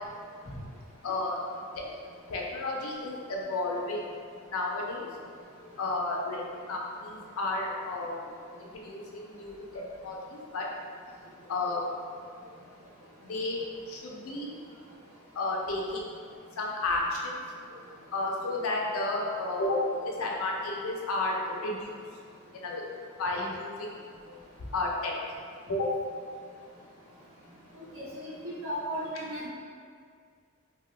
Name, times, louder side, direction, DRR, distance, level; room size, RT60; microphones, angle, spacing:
voice 1, 1.0-1.4 1.8-1.9 2.3-4.0 4.5-5.1 5.8-8.1 8.6-10.7 11.5-11.9 13.2-13.6 13.9-14.6 15.4-16.1 16.6-17.4 18.1-19.8 20.0-21.9 22.5-22.8 23.2-23.9 24.7-25.1 25.7-25.9, left 2 dB, 75° left, -2 dB, 0.5 m, -32 dB
voice 2, 28.6-29.5, equal, 75° right, -10 dB, 1.2 m, -34 dB
2.7 x 2.2 x 3.2 m, 2.1 s
head